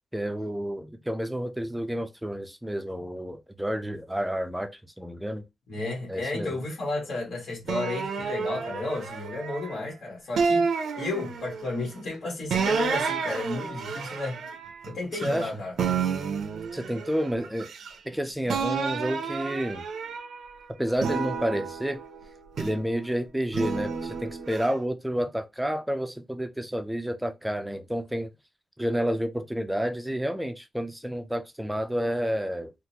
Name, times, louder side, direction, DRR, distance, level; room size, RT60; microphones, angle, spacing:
voice 1, 0.1-5.4 6.1-6.6 15.2-15.5 16.7-17.7 18.0-19.8 20.8-22.0 22.6-28.3 28.8-32.7, equal, 5° right, 0.5 m, -30 dB
voice 2, 5.7-14.4 14.8-15.7, left 2 dB, 75° left, 1.6 m, -33 dB
sound 1, 7.7-9.8 10.4-11.7 12.5-15.5 15.8-18.1 18.5-20.5 21.0-22.9 23.5-24.7, right 5 dB, 85° right, 0.5 m, -30 dB
3.7 x 2.5 x 2.9 m
wide cardioid pair, 160°, 0 cm